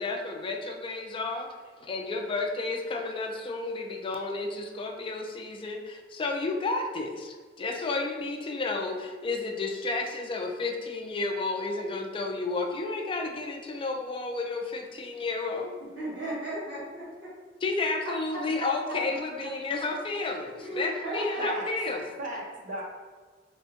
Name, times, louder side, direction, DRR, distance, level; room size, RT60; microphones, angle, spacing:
voice 1, 0.0-1.5 1.8-15.7 17.6-22.0, left 3 dB, 30° left, 3 dB, 0.3 m, -32 dB
voice 2, 15.9-17.3 20.6-21.5, right 1 dB, 70° right, -8 dB, 1.2 m, -35 dB
voice 3, 21.4-22.8, right 1 dB, 40° right, -2 dB, 0.6 m, -37 dB
3.5 x 2.1 x 2.8 m, 1.5 s
head